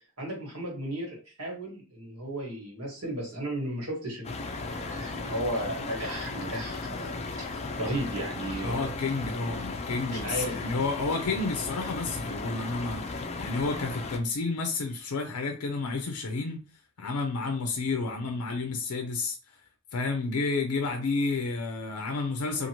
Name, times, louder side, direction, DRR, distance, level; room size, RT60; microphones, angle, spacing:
voice 1, 0.2-8.9 10.0-10.6, right 1 dB, 85° right, 1.4 m, -35 dB
sound 1, 4.2-14.2, left 3 dB, 30° left, 0.4 m, -36 dB
voice 2, 8.6-16.6 17.0-19.4 19.9-22.7, left 3 dB, 90° left, 0.5 m, -31 dB
2.7 x 2.5 x 2.9 m
head